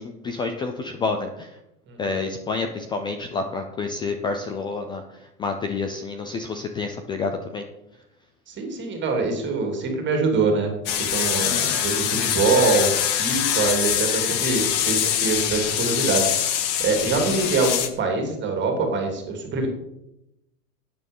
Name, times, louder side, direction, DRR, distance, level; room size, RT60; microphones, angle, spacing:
voice 1, 0.0-1.6 2.0-7.6 11.5-11.8 17.3-17.5, left 4 dB, 10° left, 6 dB, 0.4 m, -29 dB
voice 2, 8.5-10.7 11.0-16.2 16.8-19.7, right 4 dB, 25° right, 3 dB, 3.1 m, -24 dB
sound 1, 10.9-17.9, left 10 dB, 50° left, 1.8 m, -24 dB
12.5 x 9.5 x 5.4 m, 0.85 s
hypercardioid pair, 135°, 46 cm